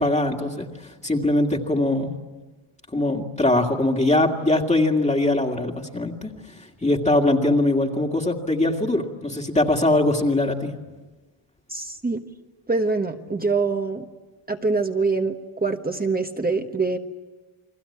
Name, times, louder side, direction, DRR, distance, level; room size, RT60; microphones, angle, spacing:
voice 1, 0.0-2.1 2.9-6.3 6.8-10.7, left 2 dB, 15° left, 2 dB, 2.1 m, -22 dB
voice 2, 11.7-12.2 12.7-14.1 14.5-17.0, right 3 dB, 20° right, 4 dB, 1.2 m, -24 dB
30.0 x 21.5 x 8.6 m, 1.2 s
wide cardioid pair, 135°, 49 cm